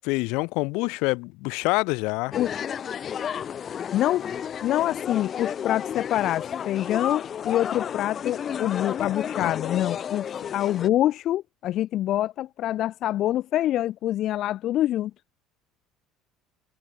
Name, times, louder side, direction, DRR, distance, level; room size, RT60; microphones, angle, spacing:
voice 1, 0.0-2.4 9.0-9.1 9.4-9.5, left 26 dB, 75° left, 2.1 m, -26 dB
sound 1, 2.3-10.9, left 8 dB, 35° left, 2.3 m, -32 dB
voice 2, 3.9-4.2 4.6-15.1, left 13 dB, 50° left, 1.0 m, -26 dB
cardioid pair, 140°, 0 cm